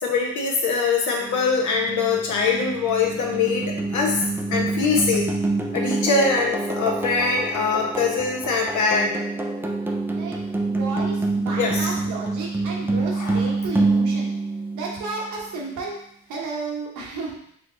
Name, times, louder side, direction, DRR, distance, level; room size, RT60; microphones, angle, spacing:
voice 1, 0.0-4.2 4.5-5.3 5.7-9.1 11.5-11.9 13.1-13.4, left 4 dB, 75° left, 0 dB, 1.2 m, -23 dB
sound 1, 1.2-15.4, right 3 dB, 5° right, 0.5 m, -26 dB
voice 2, 10.7-14.3 14.7-15.9 16.3-17.5, right 3 dB, 90° right, -3 dB, 1.3 m, -32 dB
4.9 x 2.4 x 3.9 m, 0.69 s
cardioid pair, 90°, 30 cm